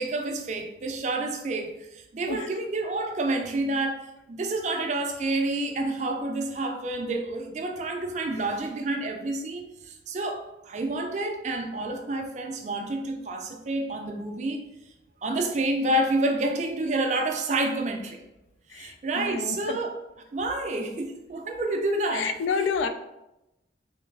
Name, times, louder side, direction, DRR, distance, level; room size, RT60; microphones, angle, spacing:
voice 1, 0.0-14.6 15.2-18.2 18.7-19.9 20.3-22.3, right 2 dB, 40° right, 4 dB, 0.4 m, -29 dB
voice 2, 18.7-19.9 22.1-22.9, left 5 dB, 80° left, 9 dB, 0.3 m, -29 dB
3.3 x 3.1 x 3.2 m, 0.93 s
head